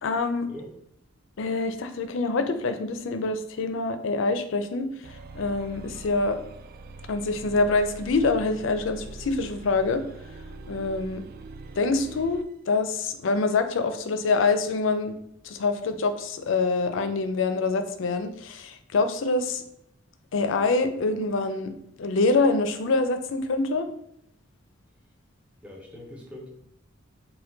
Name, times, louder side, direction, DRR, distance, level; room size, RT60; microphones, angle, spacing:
voice 1, 0.0-0.5 1.4-4.9 5.3-6.4 7.1-10.0 10.7-11.2 11.8-15.2 15.4-19.6 20.3-21.7 22.0-23.9, left 3 dB, 70° left, 8 dB, 0.4 m, -25 dB
sound 1, 5.0-12.5, right 3 dB, 50° right, 0.3 m, -43 dB
voice 2, 25.6-26.5, equal, 5° right, -2 dB, 0.6 m, -42 dB
4.3 x 2.2 x 3.8 m, 0.78 s
head